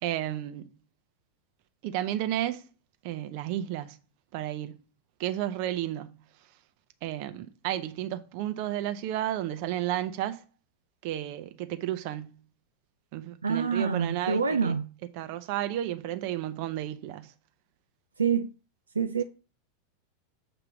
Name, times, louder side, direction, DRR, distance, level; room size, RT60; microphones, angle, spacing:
voice 1, 0.0-0.7 1.8-2.6 3.0-4.0 4.3-4.7 5.2-6.2 7.0-10.4 11.0-12.3 13.1-14.8 15.1-17.3, right 12 dB, 55° right, 0.7 m, -32 dB
voice 2, 13.4-14.9 18.2-18.5 18.9-19.2, right 6 dB, 85° right, 0.3 m, -26 dB
7.1 x 2.9 x 5.9 m
figure-of-eight pair, 90°, 0 cm